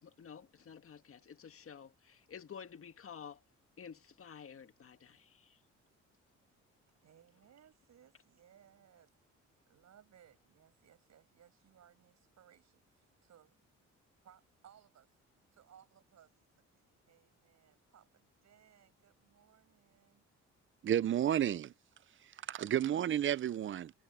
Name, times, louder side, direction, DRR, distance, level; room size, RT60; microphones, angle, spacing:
voice 1, 0.0-3.4 3.8-5.6, left 7 dB, 45° left, 1.8 m, -51 dB
voice 2, 7.0-9.1 9.6-13.6 14.2-16.3 16.7-20.2, right 9 dB, 60° right, 7.8 m, -64 dB
voice 3, 20.8-21.7 22.5-23.9, right 10 dB, 40° right, 0.5 m, -31 dB
cardioid pair, 90°, 30 cm